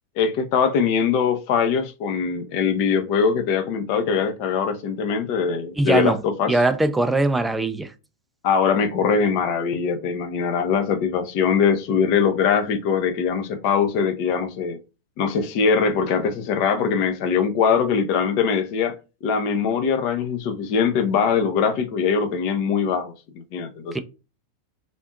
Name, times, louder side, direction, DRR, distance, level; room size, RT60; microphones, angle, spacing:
voice 1, 0.2-6.5 8.4-14.8 15.2-19.0 19.2-23.1 23.5-24.0, left 6 dB, 45° left, 0.5 m, -22 dB
voice 2, 5.8-6.2 6.5-7.9 23.9-24.0, right 2 dB, 5° right, 0.4 m, -21 dB
3.5 x 2.5 x 2.4 m
figure-of-eight pair, 90°, 0 cm